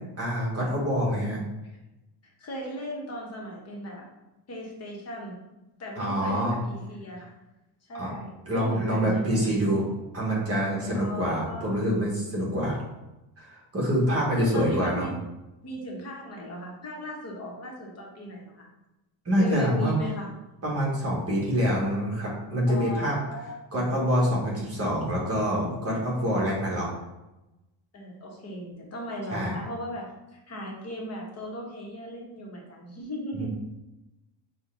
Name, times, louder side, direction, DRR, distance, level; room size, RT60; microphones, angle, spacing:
voice 1, 0.2-1.4 6.0-6.6 8.0-8.1 8.5-9.8 10.1-12.8 13.4-15.1 19.2-20.0 20.6-23.2 23.7-26.9 29.3-29.5 33.3-33.5, equal, 30° right, -4 dB, 1.2 m, -26 dB
voice 2, 2.2-4.0 4.5-5.3 5.8-7.3 7.9-9.5 10.9-11.8 14.4-15.1 15.6-18.7 19.4-20.3 22.7-23.7 27.9-33.5, equal, 35° left, -1 dB, 0.9 m, -37 dB
4.0 x 2.2 x 3.6 m, 0.98 s
cardioid pair, 150°, 46 cm